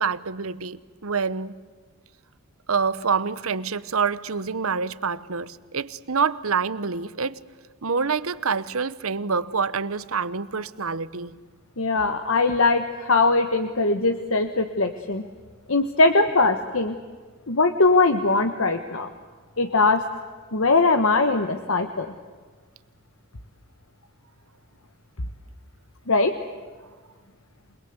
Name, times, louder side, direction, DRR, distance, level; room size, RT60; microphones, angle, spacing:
voice 1, 0.0-1.5 2.7-7.4 7.8-11.4, right 5 dB, 80° right, 17 dB, 1.0 m, -26 dB
voice 2, 11.8-15.2 15.7-17.0 17.5-19.1 19.6-20.0 20.5-22.1 26.1-26.4, left 3 dB, 70° left, 7 dB, 1.3 m, -21 dB
28.0 x 21.5 x 8.1 m, 1.5 s
head